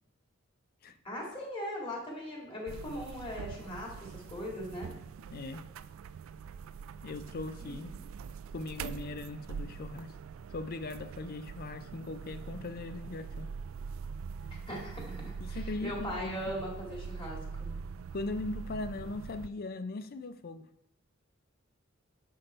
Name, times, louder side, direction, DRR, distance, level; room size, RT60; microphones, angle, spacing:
voice 1, 1.0-4.9 7.7-8.0 14.7-17.7, equal, 25° left, -3 dB, 2.2 m, -40 dB
sound 1, 2.7-19.5, right 5 dB, 70° right, 0.3 m, -43 dB
voice 2, 5.3-5.7 7.0-7.9 8.5-10.1 10.5-13.5 15.4-16.4 18.1-20.7, left 3 dB, 45° left, 11 dB, 0.5 m, -39 dB
6.6 x 5.6 x 4.3 m, 0.78 s
head